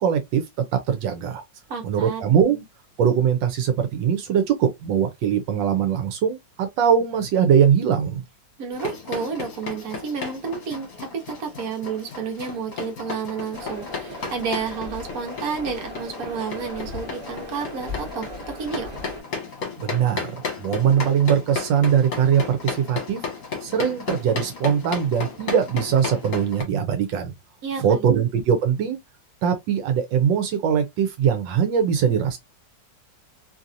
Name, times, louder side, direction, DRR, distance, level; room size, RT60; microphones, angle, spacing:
voice 1, 0.0-1.4 1.8-2.6 3.0-8.2 19.8-23.2 23.6-27.3 27.8-29.0 29.4-32.4, right 8 dB, 85° right, 1.4 m, -21 dB
voice 2, 1.7-2.2 8.6-18.9 27.6-28.1, right 6 dB, 55° right, 1.4 m, -31 dB
sound 1, 8.7-26.6, left 5 dB, 50° left, 1.4 m, -34 dB
sound 2, 13.5-19.2, left 1 dB, 35° right, 1.2 m, -38 dB
3.2 x 2.7 x 2.5 m
omnidirectional pair, 2.0 m